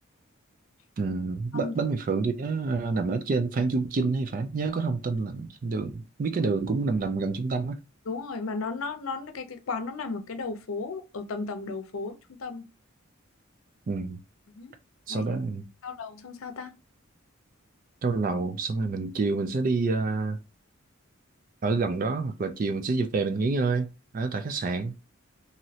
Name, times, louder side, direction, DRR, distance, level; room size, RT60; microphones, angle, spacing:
voice 1, 1.0-7.8 13.9-14.2 15.1-15.6 18.0-20.4 21.6-24.9, right 3 dB, 40° right, 0.3 m, -28 dB
voice 2, 8.1-12.1 12.4-12.6 14.5-14.7 15.1-15.3 15.8-16.7, left 4 dB, 80° left, 0.6 m, -34 dB
3.0 x 2.6 x 2.8 m
head